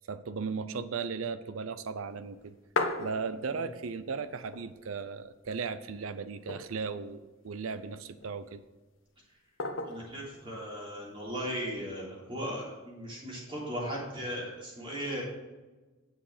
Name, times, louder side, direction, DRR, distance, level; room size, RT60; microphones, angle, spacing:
voice 1, 0.1-2.5 3.0-8.6, right 5 dB, 85° right, 13 dB, 0.6 m, -36 dB
sound 1, 2.2-3.7 4.1-4.2 4.4-5.2 5.6-5.7 6.2-7.0 7.7-8.4 9.6-10.2 11.3-11.8, left 3 dB, 70° left, 1.2 m, -36 dB
voice 2, 9.9-15.2, equal, 25° right, -5 dB, 3.6 m, -37 dB
9.8 x 7.6 x 5.0 m, 1.2 s
head